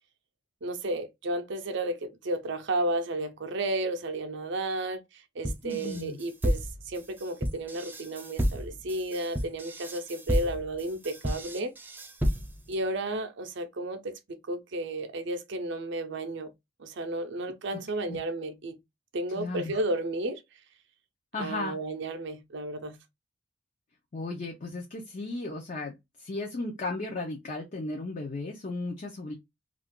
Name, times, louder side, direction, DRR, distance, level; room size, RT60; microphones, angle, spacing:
voice 1, 0.6-11.7 12.7-16.5 16.8-18.8 19.1-20.4 21.4-23.0, right 1 dB, 65° right, 0.6 m, -33 dB
sound 1, 5.4-12.7, equal, 10° right, 0.3 m, -31 dB
voice 2, 5.6-6.2 18.1-18.2 19.3-19.7 21.3-21.8 24.1-29.3, left 2 dB, 40° left, 0.6 m, -35 dB
2.4 x 2.3 x 3.5 m
head